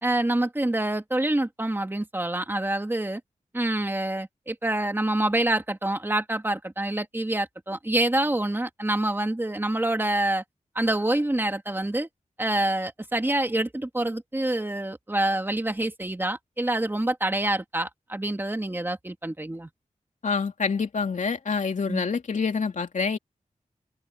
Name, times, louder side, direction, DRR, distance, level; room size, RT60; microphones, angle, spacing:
voice 1, 0.0-3.2 3.5-10.4 10.8-12.1 12.4-19.7 21.9-22.1, right 1 dB, 15° right, 2.2 m, -26 dB
voice 2, 20.2-23.2, left 5 dB, 70° left, 2.8 m, -27 dB
open air
wide cardioid pair, 115°, 13 cm